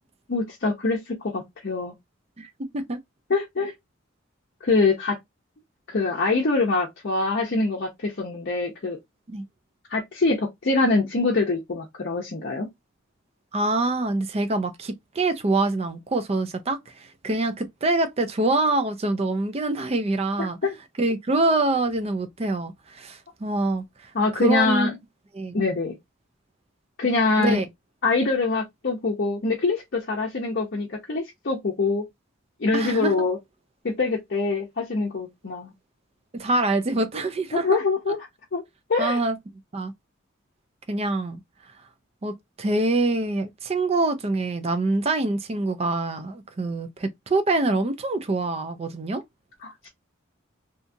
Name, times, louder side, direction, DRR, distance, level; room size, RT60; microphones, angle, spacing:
voice 1, 0.3-1.9 3.3-3.7 4.6-5.2 5.9-9.0 9.9-12.7 20.4-20.8 24.1-25.0 25.5-25.9 27.0-27.6 28.0-32.0 32.6-33.4 33.8-35.7 37.5-38.2 38.5-38.6 38.9-39.2 49.6-49.9, left 3 dB, 55° left, 0.6 m, -24 dB
voice 2, 2.4-3.0 9.3-9.4 13.5-20.6 21.0-24.1 24.4-24.9 25.3-25.6 27.4-27.7 32.7-33.3 36.4-37.8 38.1-38.2 39.0-39.4 39.7-39.9 40.9-41.4 42.2-42.3 42.6-49.2, right 2 dB, 30° right, 0.4 m, -25 dB
2.8 x 2.3 x 2.6 m
head